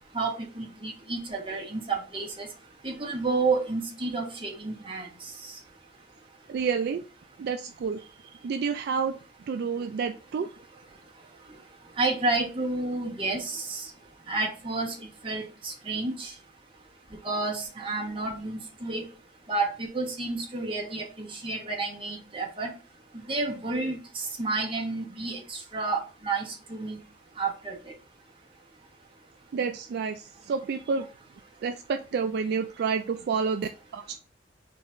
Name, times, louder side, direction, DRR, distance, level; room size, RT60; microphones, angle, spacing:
voice 1, 0.1-2.5 2.8-5.1 5.4-5.5 12.0-13.9 14.3-15.0 15.2-16.3 17.2-19.0 19.5-22.7 23.3-27.0 27.4-27.7, right 3 dB, 30° right, -1 dB, 1.1 m, -30 dB
voice 2, 6.5-7.0 7.4-9.2 9.5-10.5 29.5-31.1 31.6-34.2, right 5 dB, 60° right, 8 dB, 0.3 m, -29 dB
4.5 x 2.5 x 3.9 m, 0.34 s
head